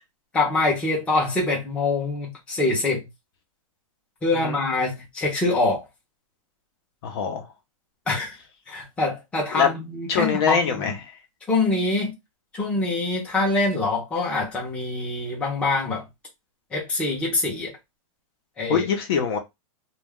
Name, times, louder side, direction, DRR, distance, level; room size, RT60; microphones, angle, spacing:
voice 1, 0.3-3.1 4.2-5.8 8.1-8.4 8.7-11.0 11.5-12.2 12.5-16.0 16.7-17.7 18.6-18.9, left 2 dB, 5° left, 0.7 m, -24 dB
voice 2, 7.0-7.5 9.5-9.7 10.1-11.1 18.7-19.4, left 7 dB, 45° left, 0.7 m, -23 dB
2.3 x 2.1 x 3.5 m
hypercardioid pair, 160°, 18 cm